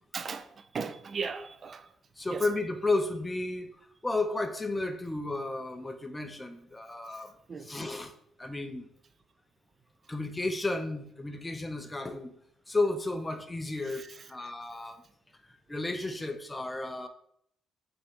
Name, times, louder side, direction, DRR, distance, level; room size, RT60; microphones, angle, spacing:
voice 1, 0.1-1.9 2.3-2.5 7.1-7.2 7.5-7.7 13.8-14.5, right 5 dB, 45° right, 0.6 m, -38 dB
voice 2, 2.2-7.3 7.7-8.1 8.4-8.9 10.1-12.3 12.7-15.0 15.7-17.1, left 2 dB, 15° left, 0.8 m, -33 dB
6.8 x 3.8 x 3.7 m
cardioid pair, 90°, 0 cm